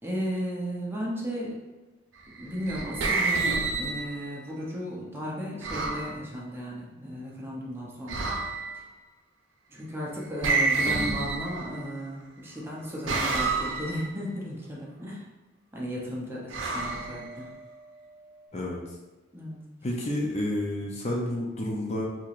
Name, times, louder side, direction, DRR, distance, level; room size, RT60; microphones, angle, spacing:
voice 1, 0.0-1.6 2.4-8.3 9.7-15.2 15.7-17.5 19.3-19.6, equal, 10° right, -5 dB, 0.6 m, -35 dB
sound 1, 2.4-4.4 5.6-6.1 8.1-8.8 10.4-11.9 13.1-14.1 16.5-17.7, right 3 dB, 80° right, 0.6 m, -29 dB
voice 2, 19.8-22.1, left 1 dB, 35° left, -2 dB, 0.5 m, -30 dB
4.5 x 2.9 x 2.5 m, 1.1 s
head